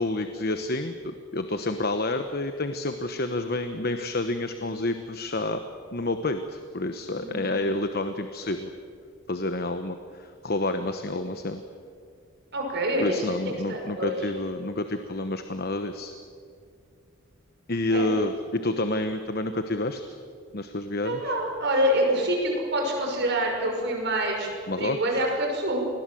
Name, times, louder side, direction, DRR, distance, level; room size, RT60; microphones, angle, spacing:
voice 1, 0.0-5.6 5.9-8.7 9.3-11.6 13.0-16.1 17.7-20.0 20.5-21.3 24.7-25.2, left 2 dB, 45° left, 8 dB, 1.1 m, -29 dB
voice 2, 7.2-7.6 12.5-13.2 13.4-14.2 17.9-18.1 21.0-24.5 24.8-25.8, right 1 dB, 50° right, 1 dB, 6.1 m, -26 dB
28.0 x 21.0 x 7.8 m, 2.3 s
head